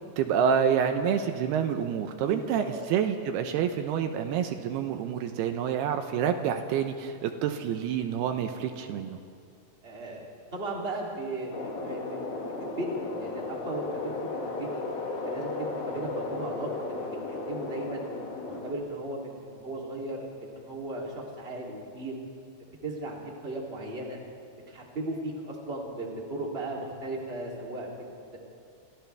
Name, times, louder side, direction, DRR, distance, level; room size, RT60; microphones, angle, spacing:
voice 1, 0.2-9.2, right 8 dB, 80° right, 6 dB, 2.8 m, -28 dB
voice 2, 2.2-2.8 9.8-10.2 10.5-12.3 12.6-18.1 18.4-22.2 22.6-23.2 23.4-24.2 24.7-28.0 28.3-28.4, right 2 dB, 15° right, -3 dB, 2.8 m, -37 dB
sound 1, 11.5-18.7, left 3 dB, 65° left, 3.8 m, -35 dB
29.5 x 26.0 x 3.5 m, 2.3 s
omnidirectional pair, 4.7 m